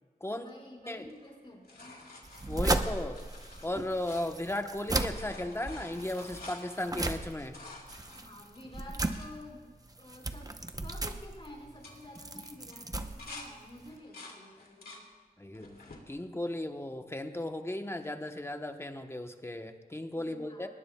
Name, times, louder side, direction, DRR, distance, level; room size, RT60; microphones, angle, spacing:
voice 1, 0.3-2.0 8.1-9.7 10.0-15.1 20.1-20.7, left 1 dB, 35° left, -2 dB, 4.9 m, -50 dB
sound 1, 1.0-4.7 4.9-9.3 9.9-10.0 10.2-10.6 10.9-11.2 11.7-13.5 13.8-15.0 15.5-16.0 16.7-17.4 19.0-19.1, left 2 dB, 70° left, 2.5 m, -51 dB
sound 2, 2.2-14.0, right 2 dB, 20° right, 0.8 m, -36 dB
voice 2, 2.5-3.2 3.6-7.6 15.4-15.8 16.1-20.7, left 1 dB, 15° left, 6 dB, 1.0 m, -36 dB
22.0 x 20.0 x 2.3 m, 1.4 s
wide cardioid pair, 95°, 16 cm